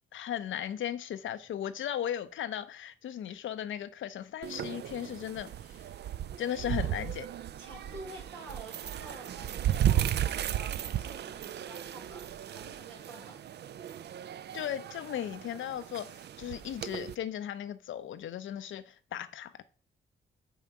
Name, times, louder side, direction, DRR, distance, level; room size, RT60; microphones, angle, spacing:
voice 1, 0.1-5.8 6.4-7.2 14.5-19.6, left 10 dB, 70° left, 0.6 m, -37 dB
sound 1, 4.4-17.2, right 10 dB, 55° right, 0.4 m, -35 dB
voice 2, 6.6-7.0 7.6-13.5, right 2 dB, 85° right, 1.7 m, -49 dB
5.6 x 3.6 x 5.9 m
supercardioid pair, 45°, 21 cm